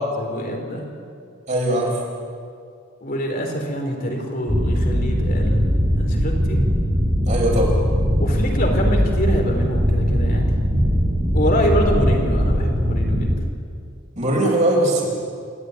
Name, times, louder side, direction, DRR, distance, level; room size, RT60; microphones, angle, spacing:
voice 1, 0.0-0.8 3.0-5.6 6.0-6.6 8.2-10.5 11.3-13.3, equal, 45° left, 1 dB, 3.8 m, -25 dB
voice 2, 1.5-2.0 7.3-7.8 10.8-10.9 14.2-15.1, right 1 dB, 35° right, -1 dB, 6.1 m, -20 dB
sound 1, 4.5-13.3, equal, 20° right, 5.3 m, -20 dB
27.5 x 13.0 x 9.7 m, 2.3 s
head